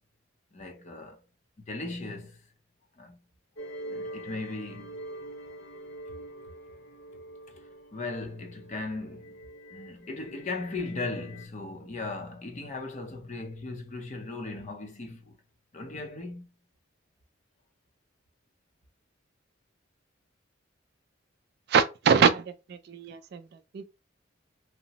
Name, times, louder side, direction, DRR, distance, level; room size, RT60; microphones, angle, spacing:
voice 1, 0.5-1.2 1.6-2.4 3.0-3.2 3.9-5.0 7.9-9.3 9.7-15.4 15.7-16.5, left 3 dB, 35° left, 0.5 m, -37 dB
sound 1, 3.6-11.5, right 1 dB, 80° left, 0.5 m, -44 dB
voice 2, 21.7-23.8, right 6 dB, 55° right, 0.3 m, -24 dB
2.8 x 2.0 x 2.8 m
head